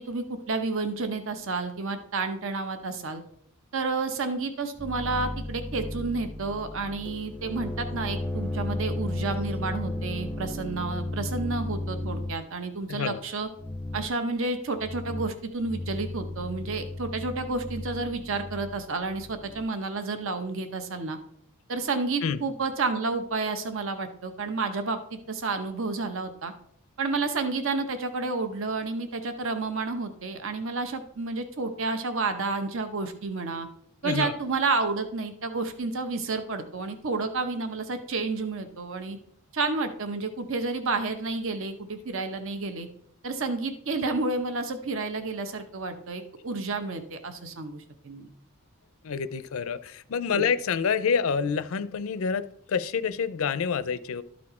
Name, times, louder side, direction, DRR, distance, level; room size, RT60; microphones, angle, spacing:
voice 1, 0.0-3.2 3.7-13.5 13.9-21.2 21.7-26.5 27.0-33.7 34.0-39.2 39.5-42.9 43.2-48.3 50.3-50.5, right 3 dB, 65° right, 8 dB, 0.8 m, -30 dB
sound 1, 4.8-12.5 13.5-14.2 14.8-15.4 15.6-19.7, left 1 dB, 5° left, 0.5 m, -34 dB
voice 2, 12.9-13.2 22.2-22.4 34.0-34.3 49.0-54.2, left 6 dB, 70° left, 14 dB, 0.5 m, -27 dB
12.5 x 4.3 x 4.3 m, 0.66 s
head